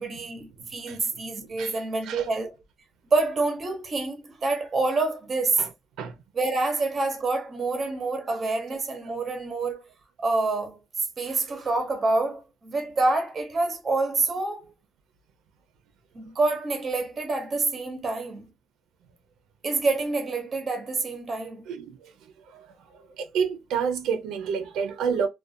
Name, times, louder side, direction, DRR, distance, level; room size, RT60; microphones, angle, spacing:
voice 1, 0.0-2.6 3.1-5.7 6.3-9.9 10.2-10.8 11.2-14.7 16.1-18.5 19.6-21.7, right 3 dB, 30° right, 0.7 m, -27 dB
voice 2, 1.6-2.3 5.6-5.7 6.0-6.2 11.5-11.6 21.7-22.1 22.5-22.7 23.2-25.3, right 6 dB, 80° right, 0.5 m, -29 dB
2.4 x 2.2 x 2.5 m
cardioid pair, 145°, 0 cm